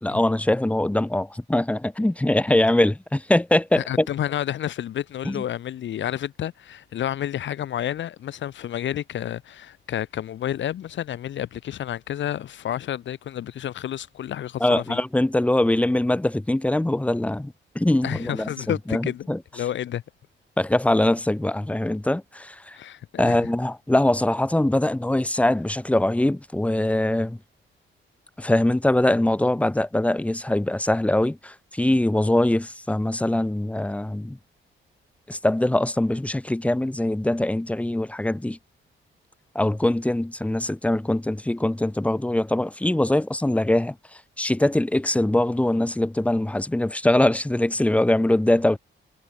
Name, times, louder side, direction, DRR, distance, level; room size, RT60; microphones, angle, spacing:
voice 1, 0.0-4.1 5.2-5.4 14.6-18.5 18.9-19.4 20.6-22.8 23.2-27.4 28.4-34.4 35.3-38.6 39.5-44.0 44.4-48.8, left 1 dB, 5° left, 1.1 m, -22 dB
voice 2, 3.7-15.0 18.0-19.3 19.5-20.0 22.7-23.5, left 11 dB, 60° left, 1.0 m, -30 dB
wide cardioid pair, 155°, 21 cm